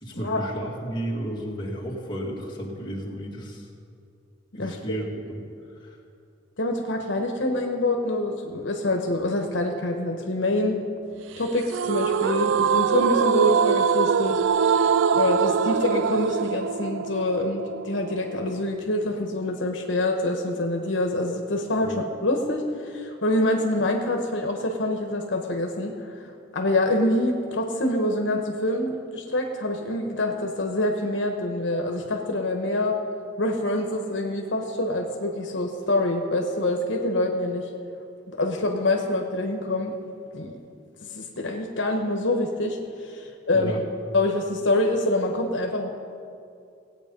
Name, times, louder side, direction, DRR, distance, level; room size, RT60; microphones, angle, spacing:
voice 1, 0.0-3.7 4.6-5.4 5.8-6.0 21.8-22.0 43.5-43.8, equal, 25° left, -4 dB, 2.2 m, -33 dB
voice 2, 6.6-10.9 11.4-14.4 14.7-21.9 22.2-26.1 26.5-33.0 33.4-37.7 38.3-39.9 40.3-40.6 41.0-43.7 44.1-45.9, left 1 dB, 75° left, 3 dB, 1.1 m, -26 dB
sound 1, 11.7-18.8, right 6 dB, 75° right, 0.3 m, -23 dB
18.0 x 8.2 x 5.3 m, 2.5 s
head